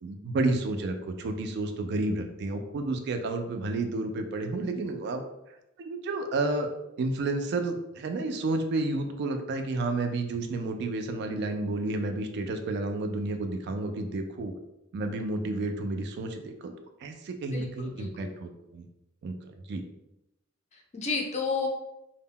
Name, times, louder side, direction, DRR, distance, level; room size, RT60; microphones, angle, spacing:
voice 1, 0.0-5.2 5.8-6.7 7.0-14.5 14.9-16.7 17.0-18.9 19.2-19.8, right 2 dB, 55° right, 6 dB, 0.3 m, -31 dB
voice 2, 17.5-18.3 20.7-21.7, left 4 dB, 35° left, 1 dB, 0.4 m, -32 dB
2.1 x 2.0 x 3.6 m, 0.89 s
head